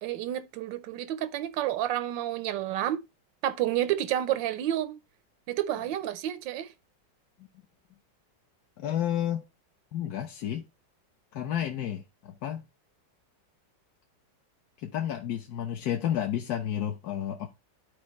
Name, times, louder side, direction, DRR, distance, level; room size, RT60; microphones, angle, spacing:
voice 1, 0.0-3.0 3.4-5.0 5.5-6.7, right 12 dB, 90° right, 1.4 m, -30 dB
voice 2, 8.8-9.4 9.9-10.6 11.3-12.6 14.8-17.5, left 10 dB, 65° left, 1.1 m, -31 dB
11.5 x 4.5 x 3.1 m
omnidirectional pair, 2.0 m